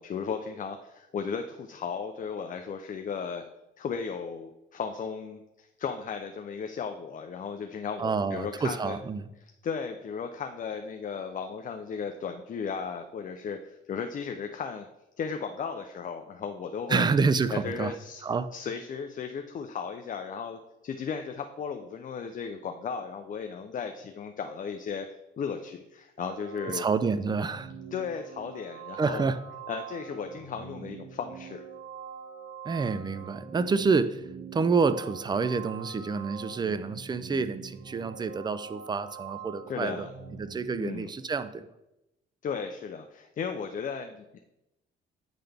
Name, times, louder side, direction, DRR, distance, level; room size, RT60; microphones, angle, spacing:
voice 1, 0.0-3.4 3.8-9.0 9.6-14.9 15.2-17.1 17.5-18.2 18.5-25.1 25.4-26.9 27.9-29.3 29.7-31.6 39.7-40.1 40.7-41.1 42.4-44.4, left 6 dB, 40° left, 6 dB, 0.5 m, -35 dB
voice 2, 8.0-9.3 16.9-17.9 18.2-18.5 26.7-27.7 29.0-29.4 32.6-40.1 40.4-41.7, right 4 dB, 20° right, 13 dB, 0.4 m, -28 dB
sound 1, 26.2-40.9, right 6 dB, 55° right, 1.0 m, -44 dB
8.9 x 3.8 x 3.4 m, 0.92 s
cardioid pair, 90°, 20 cm